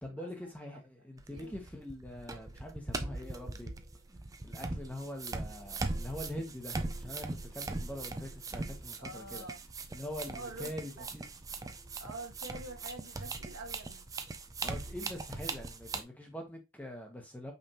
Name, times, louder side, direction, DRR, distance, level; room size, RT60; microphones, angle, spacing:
voice 1, 0.0-3.7 4.4-9.5 9.9-11.3 14.6-17.5, left 1 dB, 5° left, 1.0 m, -44 dB
sound 1, 1.2-16.0, right 3 dB, 15° right, 0.4 m, -40 dB
voice 2, 9.0-9.6 10.3-11.1 12.0-14.1, right 2 dB, 75° right, 1.7 m, -46 dB
5.4 x 3.4 x 2.9 m
head